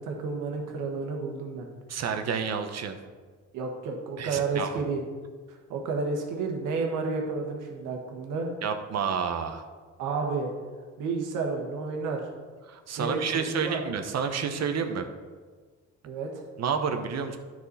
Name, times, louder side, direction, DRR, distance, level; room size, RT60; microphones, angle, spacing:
voice 1, 0.0-1.7 3.5-5.0 5.5-8.5 10.0-10.5 11.0-12.2 13.0-13.8 16.0-16.3, right 4 dB, 90° right, 2 dB, 1.5 m, -31 dB
voice 2, 1.9-3.0 4.2-4.8 8.6-9.6 12.7-15.1 16.6-17.4, right 6 dB, 60° right, 7 dB, 1.0 m, -30 dB
10.0 x 6.1 x 4.1 m, 1.5 s
cardioid pair, 90°, 30 cm